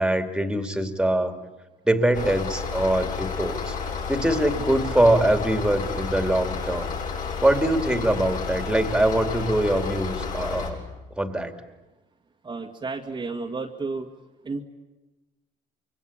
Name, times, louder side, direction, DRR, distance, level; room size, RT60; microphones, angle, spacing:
voice 1, 0.0-1.3 1.8-3.8 4.1-6.9 7.4-10.8 11.2-11.5, right 1 dB, 5° right, 6 dB, 2.6 m, -23 dB
sound 1, 2.1-10.7, left 5 dB, 50° left, 7.6 m, -31 dB
voice 2, 12.4-14.1 14.4-14.6, right 4 dB, 25° right, 0 dB, 1.9 m, -32 dB
26.0 x 23.5 x 8.7 m, 1.1 s
cardioid pair, 110°, 17 cm